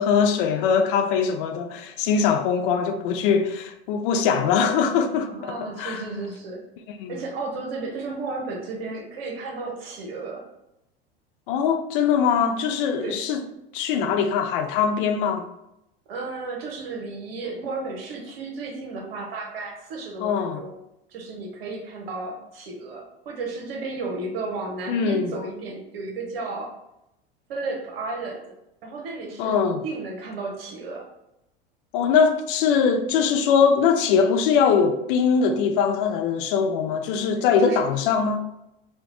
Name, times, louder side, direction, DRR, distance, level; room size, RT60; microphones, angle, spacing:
voice 1, 0.0-6.0 7.0-7.2 11.5-13.4 13.7-15.5 20.2-20.6 24.9-25.3 29.4-29.8 31.9-38.5, left 6 dB, 60° left, 0.5 m, -22 dB
voice 2, 5.3-6.6 7.1-10.5 13.0-13.3 16.1-20.7 21.1-26.7 27.5-28.4 28.8-31.1 37.3-37.8, right 3 dB, 70° right, 1.0 m, -33 dB
4.2 x 2.3 x 2.9 m
hypercardioid pair, 80°, 30 cm